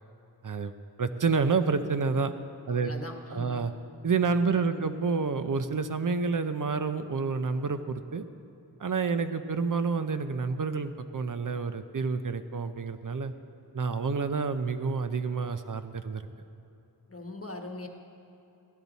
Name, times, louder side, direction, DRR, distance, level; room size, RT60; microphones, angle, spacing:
voice 1, 1.0-2.3 2.7-2.9 3.3-3.7 4.0-8.2 8.8-13.3 13.7-16.2, right 4 dB, 55° right, 10 dB, 0.7 m, -29 dB
voice 2, 2.7-3.7 4.4-5.0 17.1-17.9, left 2 dB, 35° left, 3 dB, 1.3 m, -41 dB
16.0 x 12.0 x 4.1 m, 2.8 s
wide cardioid pair, 60°, 40 cm